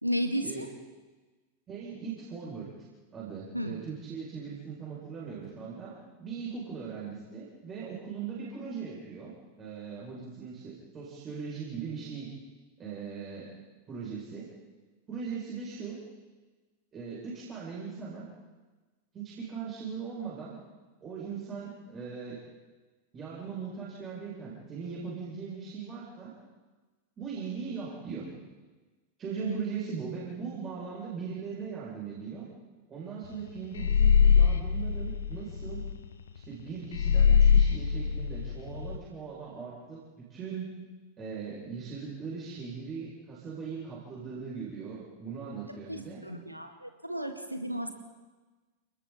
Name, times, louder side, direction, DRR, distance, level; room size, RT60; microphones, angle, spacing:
voice 1, 0.0-0.7 3.5-3.8 29.4-29.6 45.7-47.9, equal, 90° right, 5 dB, 2.1 m, -34 dB
voice 2, 1.7-2.7 3.1-9.3 9.6-12.3 12.8-13.5 13.9-14.5 15.1-16.0 16.9-18.3 19.1-20.6 21.0-22.4 23.1-26.3 27.2-28.3 29.2-32.4 32.9-35.8 36.3-40.7 41.2-46.2, right 6 dB, 25° right, -6 dB, 7.7 m, -39 dB
sound 1, 33.8-35.9 36.9-39.0, left 7 dB, 65° left, 1.3 m, -23 dB
29.5 x 20.0 x 4.5 m, 1.3 s
figure-of-eight pair, 90°, 0 cm